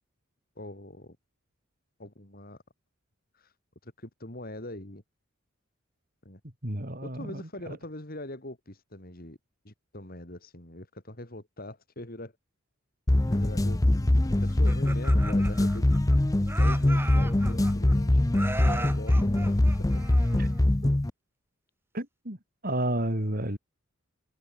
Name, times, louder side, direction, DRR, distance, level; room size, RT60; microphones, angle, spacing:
voice 1, 0.6-1.2 2.0-2.6 3.3-3.5 3.8-5.0 6.2-6.4 7.0-9.4 9.6-12.3 13.3-15.9 16.5-18.2 18.6-19.5 19.9-20.0, left 1 dB, 45° left, 4.3 m, -42 dB
voice 2, 6.6-7.8 20.4-20.5 21.9-22.4 22.6-23.6, right 1 dB, 45° right, 5.0 m, -31 dB
sound 1, 13.1-21.1, left 1 dB, 15° left, 0.5 m, -23 dB
Laughter, 14.5-16.2 16.5-17.9 18.3-20.6, right 2 dB, 10° right, 4.5 m, -38 dB
head